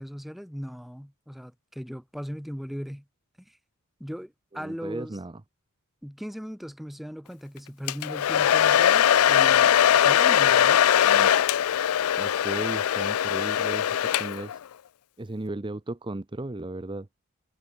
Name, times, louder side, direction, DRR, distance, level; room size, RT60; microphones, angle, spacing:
voice 1, 0.0-3.0 3.4-3.6 4.0-5.2 6.0-10.8, equal, ahead, 1.5 m, -38 dB
voice 2, 4.5-5.4 11.0-11.3 12.2-14.6 15.2-17.1, right 2 dB, 20° right, 0.6 m, -36 dB
Domestic sounds home sounds, 7.9-14.6, left 10 dB, 80° left, 0.4 m, -21 dB
head